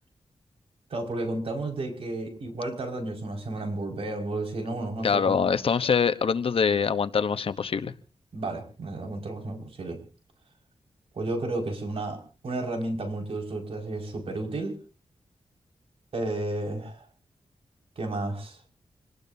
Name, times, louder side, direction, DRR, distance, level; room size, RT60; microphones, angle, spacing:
voice 1, 0.9-5.4 8.3-10.0 11.1-14.8 16.1-17.1 18.0-18.6, right 2 dB, 70° right, 2 dB, 5.4 m, -32 dB
voice 2, 5.0-7.9, left 6 dB, 65° left, 12 dB, 1.0 m, -24 dB
27.0 x 19.0 x 2.8 m, 0.38 s
wide cardioid pair, 85°, 10 cm